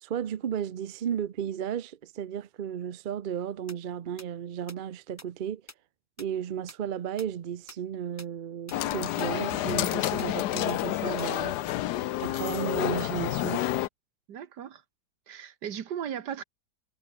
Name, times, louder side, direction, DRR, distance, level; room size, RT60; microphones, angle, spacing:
voice 1, 0.0-5.6 6.2-11.6 12.2-13.6, right 9 dB, 60° right, 0.5 m, -34 dB
sound 1, 3.7-3.8 4.2-4.3 4.7-4.8 5.2-5.3 5.7-5.8 6.2-6.3 6.7-6.8 7.2-7.3 7.7-7.8 8.2-8.3 8.7-8.8 9.2-9.3 9.7-9.8 10.2-10.3 10.7-10.8 11.2-11.3, left 1 dB, 10° left, 2.0 m, -45 dB
sound 2, 8.7-13.9, left 14 dB, 75° left, 1.2 m, -29 dB
voice 2, 14.3-14.8 15.3-16.4, right 9 dB, 80° right, 1.8 m, -36 dB
omnidirectional pair, 1.8 m